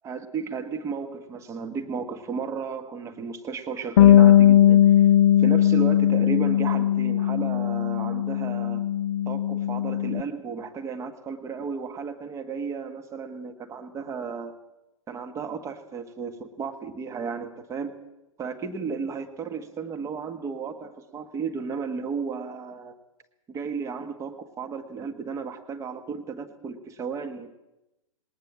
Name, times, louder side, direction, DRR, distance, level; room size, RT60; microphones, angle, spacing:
voice 1, 0.0-5.1 5.4-8.8 9.2-14.5 15.1-18.0 18.4-22.9 23.5-27.5, right 5 dB, 15° right, 8 dB, 1.5 m, -34 dB
Bass guitar, 4.0-10.2, left 11 dB, 50° left, 0.7 m, -19 dB
20.5 x 18.5 x 7.4 m, 0.93 s
figure-of-eight pair, 110°, 17 cm